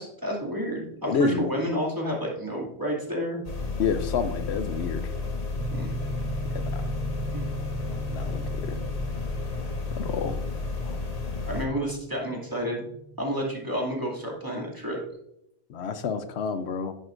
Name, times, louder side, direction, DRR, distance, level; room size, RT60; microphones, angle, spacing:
voice 1, 0.0-3.4 5.7-5.9 7.3-7.4 11.5-12.9 13.2-15.0, equal, 20° right, -3 dB, 2.4 m, -30 dB
voice 2, 1.1-1.6 3.8-5.0 6.7-6.8 8.1-8.8 9.9-10.4 10.8-11.0 15.7-16.9, left 6 dB, 80° left, 10 dB, 0.9 m, -29 dB
sound 1, 3.4-11.7, left 3 dB, 40° left, 1.2 m, -32 dB
sound 2, 5.5-15.1, right 2 dB, 65° right, 1.2 m, -39 dB
11.0 x 9.2 x 2.5 m, 0.81 s
omnidirectional pair, 1.1 m